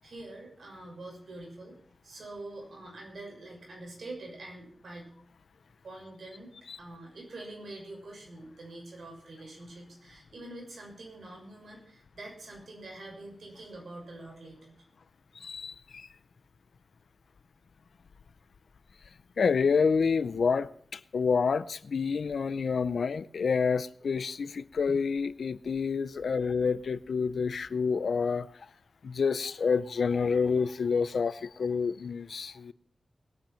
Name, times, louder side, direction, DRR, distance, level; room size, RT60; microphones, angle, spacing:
voice 1, 0.0-1.8 2.0-5.1 5.8-6.5 6.8-14.8, right 2 dB, 80° right, 6.3 m, -45 dB
voice 2, 15.3-16.1 19.4-28.5 29.0-32.7, left 5 dB, 85° left, 0.6 m, -28 dB
20.0 x 9.0 x 5.8 m
wide cardioid pair, 100°, 0 cm